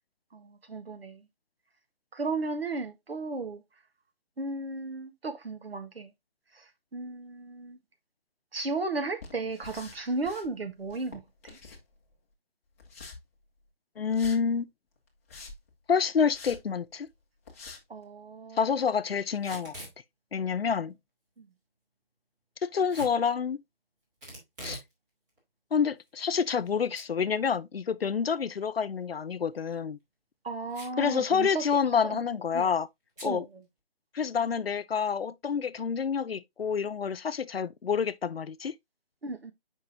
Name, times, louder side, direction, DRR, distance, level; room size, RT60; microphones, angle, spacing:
voice 1, 0.3-1.2 2.1-3.6 4.4-6.1 6.6-6.7 6.9-7.8 8.5-11.6 17.9-18.6 21.4-21.5 30.4-31.6 32.1-32.2 32.5-32.7 33.2-33.4 39.2-39.5, right 3 dB, 80° right, 1.5 m, -35 dB
sound 1, 9.2-10.5 10.8-12.1 12.8-13.2 14.1-14.4 15.1-15.7 16.3-16.6 17.1-17.2 17.5-17.8, left 4 dB, 15° left, 0.8 m, -46 dB
voice 2, 14.0-14.7 15.9-17.1 18.6-19.7 20.3-21.0 22.6-23.6 24.6-24.8 25.7-30.0 31.0-32.9 33.2-33.4 34.1-38.7, left 6 dB, 80° left, 0.7 m, -28 dB
Packing tape duct tape / Tearing, 19.3-20.0 22.9-23.2 24.2-24.9 25.3-25.4 26.1-26.7 26.9-27.1 27.5-27.6 29.5-29.8 30.7-31.1 31.4-31.5 31.7-32.1 33.2-33.3, right 1 dB, 20° right, 2.7 m, -43 dB
7.7 x 5.3 x 2.6 m
figure-of-eight pair, 160°, 29 cm